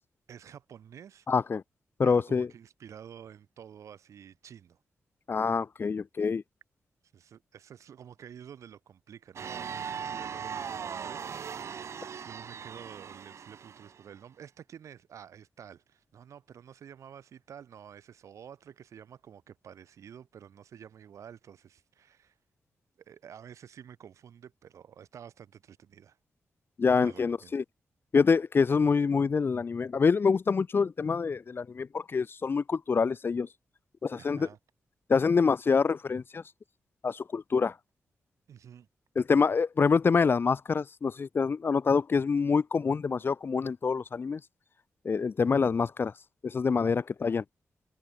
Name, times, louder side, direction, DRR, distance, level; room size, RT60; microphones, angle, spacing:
voice 1, 0.3-1.3 2.0-4.8 7.1-11.4 12.2-22.3 23.1-26.2 27.0-27.5 34.1-34.6 38.5-38.9 46.8-46.9, right 8 dB, 85° right, 7.3 m, -50 dB
voice 2, 1.3-1.6 2.0-2.5 5.3-6.4 26.8-27.6 28.1-33.5 34.0-34.5 35.1-36.4 37.0-37.7 39.2-44.4 45.0-46.1 46.4-47.4, left 5 dB, 45° left, 1.0 m, -26 dB
sound 1, 9.4-14.0, right 7 dB, 65° right, 1.4 m, -39 dB
cardioid pair, 90°, 5 cm